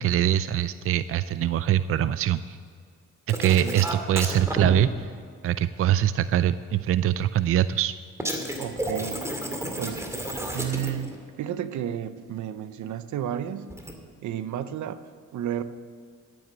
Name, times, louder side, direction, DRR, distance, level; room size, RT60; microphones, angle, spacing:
voice 1, 0.0-2.6 3.3-5.1 5.4-7.9, right 11 dB, 50° right, 14 dB, 0.4 m, -23 dB
sound 1, 3.3-4.7 8.2-11.1 13.7-13.9, right 1 dB, 10° right, 2.3 m, -31 dB
voice 2, 8.6-9.3 9.8-10.0 10.5-13.7 14.2-15.0 15.3-15.6, right 10 dB, 70° right, 12 dB, 0.8 m, -32 dB
12.0 x 9.0 x 7.6 m, 2.2 s
cardioid pair, 90°, 30 cm